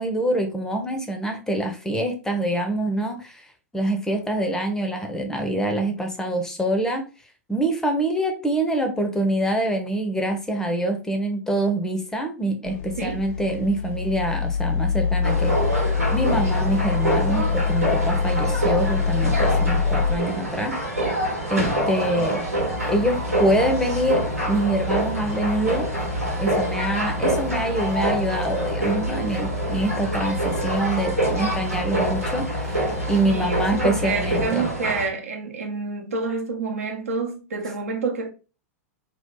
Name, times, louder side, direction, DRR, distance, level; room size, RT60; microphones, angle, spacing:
voice 1, 0.0-3.5 3.7-7.0 7.5-15.5 16.1-20.7 21.5-22.4 22.9-25.9 26.4-34.7, right 1 dB, 5° left, 0.6 m, -25 dB
sound 1, 12.7-20.2, left 6 dB, 60° left, 0.4 m, -24 dB
sound 2, 15.2-35.1, right 1 dB, 85° right, 1.1 m, -26 dB
sound 3, 22.7-34.5, left 2 dB, 85° left, 1.1 m, -32 dB
voice 2, 33.2-38.3, right 4 dB, 70° right, 0.7 m, -28 dB
2.8 x 2.3 x 3.5 m
figure-of-eight pair, 95°, 8 cm